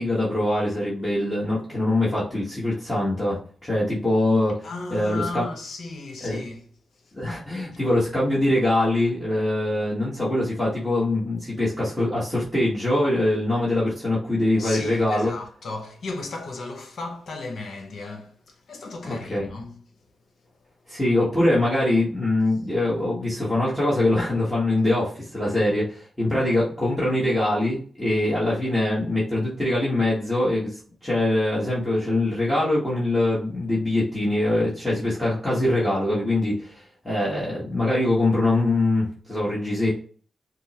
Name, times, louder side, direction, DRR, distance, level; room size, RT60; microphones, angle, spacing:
voice 1, 0.0-5.4 6.2-6.4 7.1-15.3 19.0-19.5 20.9-39.9, left 1 dB, 10° left, 1.3 m, -23 dB
voice 2, 4.6-6.7 7.0-7.1 14.6-19.8, left 3 dB, 70° left, 1.0 m, -35 dB
5.2 x 2.1 x 2.9 m
wide cardioid pair, 110°, 0 cm